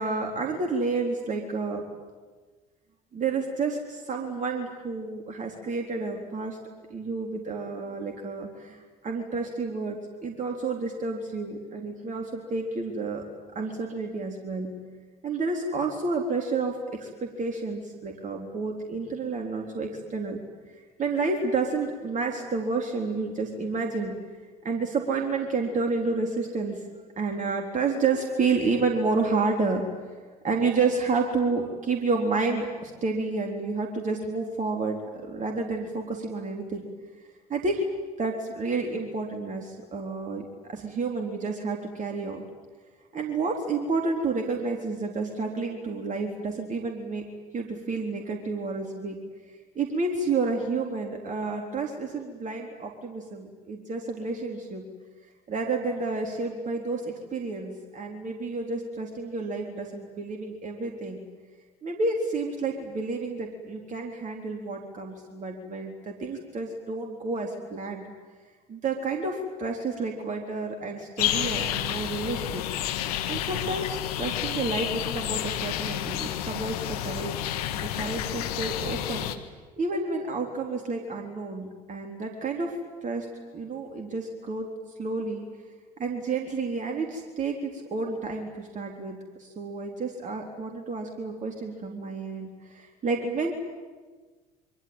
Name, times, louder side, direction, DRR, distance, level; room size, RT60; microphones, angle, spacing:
voice 1, 0.0-1.8 3.1-6.6 6.9-8.8 9.0-13.2 13.5-14.7 15.2-20.4 21.0-24.2 24.6-26.8 27.2-29.8 30.4-36.9 37.5-37.8 38.2-42.4 43.1-47.2 47.5-49.2 49.8-54.9 55.5-61.2 61.8-68.1 68.7-72.6 73.3-76.8 77.0-77.5 77.8-79.3 79.8-82.7 83.0-83.3 83.5-84.7 85.0-85.5 86.0-93.5, right 3 dB, 40° right, 2 dB, 3.9 m, -30 dB
sound 1, 71.2-79.4, left 12 dB, 70° left, 1.6 m, -30 dB
26.5 x 23.5 x 9.0 m, 1.3 s
figure-of-eight pair, 55°, 20 cm